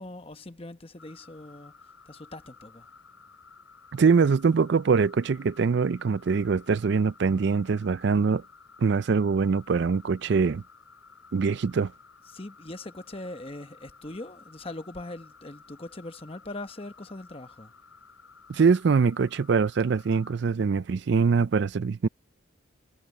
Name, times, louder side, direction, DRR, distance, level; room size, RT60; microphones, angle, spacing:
voice 1, 0.0-1.7 2.1-2.9 12.3-17.7, left 2 dB, 25° left, 1.1 m, -41 dB
sound 1, 1.0-20.3, left 5 dB, 90° left, 3.9 m, -54 dB
voice 2, 3.9-8.4 8.8-10.6 11.3-11.9 18.5-22.1, right 5 dB, 55° right, 0.4 m, -23 dB
head